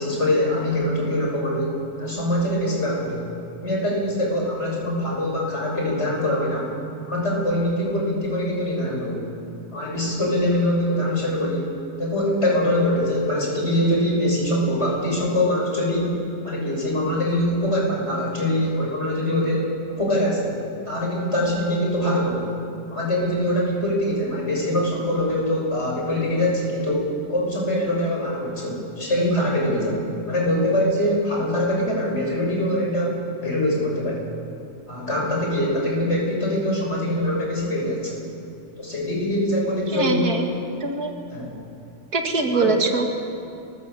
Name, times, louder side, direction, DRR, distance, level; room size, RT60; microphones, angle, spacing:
voice 1, 0.0-3.3 3.6-6.7 7.1-9.3 9.7-11.7 12.0-16.1 16.4-20.6 20.8-22.5 22.9-34.2 34.9-38.2 38.8-40.4 41.3-41.6 42.5-42.7, left 1 dB, 45° left, -2 dB, 6.7 m, -23 dB
voice 2, 39.9-40.5 40.8-41.1 42.1-43.1, right 3 dB, 90° right, 4 dB, 2.5 m, -23 dB
30.0 x 14.5 x 8.4 m, 2.6 s
omnidirectional pair, 1.6 m